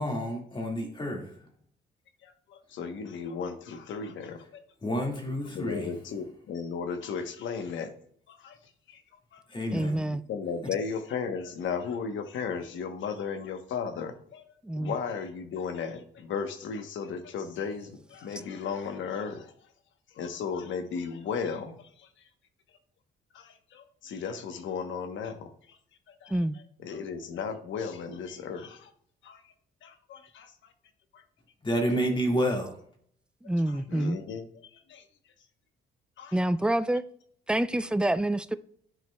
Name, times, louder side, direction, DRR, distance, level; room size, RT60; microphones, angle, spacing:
voice 1, 0.0-1.5 4.8-5.9 9.5-10.0 31.6-32.8, equal, 25° left, 1.9 m, -29 dB
voice 2, 2.2-4.5 5.5-7.9 8.3-9.4 9.7-19.7 20.1-22.3 22.7-22.8 23.3-25.8 26.1-28.9 29.2-29.5 29.8-30.7 31.1-31.2 33.7-35.3 36.2-36.4, left 6 dB, 75° left, 1.0 m, -36 dB
voice 3, 9.7-10.2 14.6-14.9 26.3-26.6 33.4-34.2 36.3-37.0 37.5-38.6, right 1 dB, 5° right, 0.4 m, -27 dB
11.0 x 4.9 x 2.3 m
cardioid pair, 90°, 20 cm